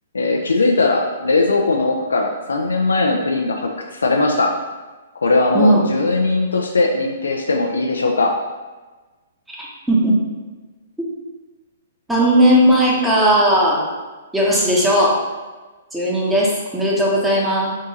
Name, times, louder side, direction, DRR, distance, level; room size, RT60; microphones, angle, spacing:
voice 1, 0.1-4.5 5.2-8.3, left 3 dB, 85° left, 1 dB, 0.4 m, -19 dB
voice 2, 9.5-10.2 12.1-13.8 14.3-15.2 15.9-17.7, equal, 5° right, -5 dB, 1.0 m, -16 dB
3.6 x 2.7 x 4.1 m, 1.2 s
hypercardioid pair, 130°, 0 cm